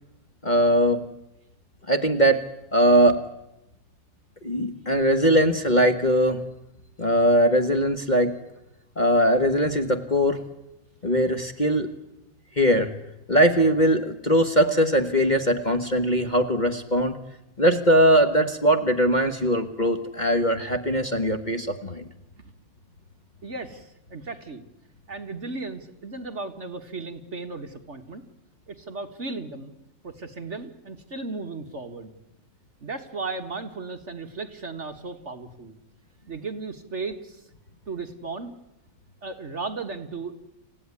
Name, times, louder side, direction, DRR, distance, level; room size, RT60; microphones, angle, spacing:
voice 1, 0.4-1.0 1.9-2.4 2.7-3.2 4.4-6.4 7.0-8.3 9.0-10.4 11.0-11.9 12.5-12.9 13.3-17.2 17.6-22.1, equal, 25° left, 4 dB, 1.4 m, -21 dB
voice 2, 23.4-24.7 25.1-28.2 28.7-29.7 30.0-32.1 32.8-35.7 36.3-37.4 37.9-38.5 39.2-40.4, right 3 dB, 40° right, 7 dB, 1.6 m, -35 dB
28.0 x 16.0 x 9.7 m, 0.92 s
omnidirectional pair, 2.0 m